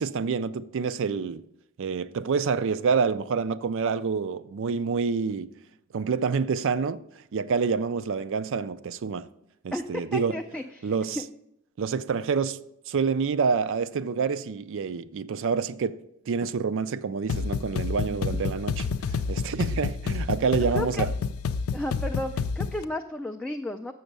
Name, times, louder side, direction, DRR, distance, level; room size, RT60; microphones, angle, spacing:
voice 1, 0.0-1.4 1.8-5.5 5.9-7.0 7.3-9.3 9.6-10.4 10.8-11.2 11.8-21.1, right 5 dB, 60° right, 0.4 m, -27 dB
voice 2, 10.1-11.2 20.7-21.1 21.7-23.9, left 1 dB, 5° left, 0.3 m, -33 dB
sound 1, 17.3-22.8, left 5 dB, 85° left, 0.4 m, -29 dB
7.0 x 6.4 x 6.6 m
head